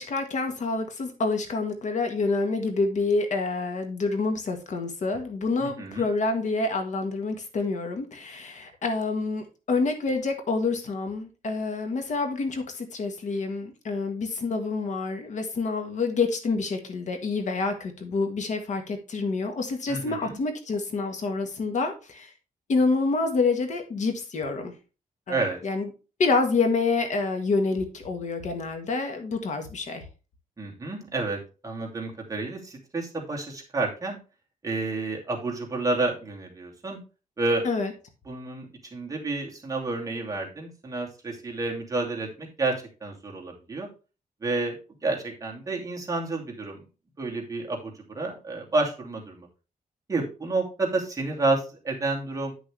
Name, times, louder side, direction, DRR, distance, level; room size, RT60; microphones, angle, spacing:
voice 1, 0.0-22.3 22.7-24.7 25.3-25.9 26.2-30.0 37.6-37.9, left 3 dB, 55° left, 5 dB, 1.7 m, -27 dB
voice 2, 5.6-6.0 19.9-20.4 25.3-25.6 30.6-34.2 34.6-37.0 37.4-37.6 38.3-42.8 43.0-43.9 44.4-44.8 45.0-46.8 47.2-49.5 50.1-52.5, right 3 dB, 25° right, -2 dB, 2.7 m, -30 dB
10.0 x 6.4 x 3.4 m, 0.32 s
wide cardioid pair, 140°, 15 cm